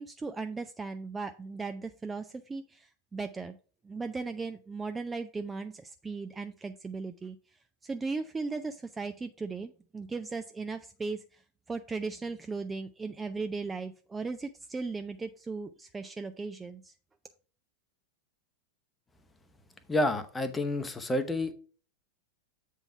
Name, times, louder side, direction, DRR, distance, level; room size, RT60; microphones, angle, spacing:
voice 1, 0.0-3.6 3.8-7.4 7.8-11.4 11.7-16.9, right 4 dB, 15° right, 8 dB, 0.4 m, -37 dB
voice 2, 19.9-21.5, left 1 dB, 10° left, 9 dB, 0.8 m, -29 dB
8.0 x 3.6 x 5.3 m, 0.40 s
figure-of-eight pair, 90°, 0 cm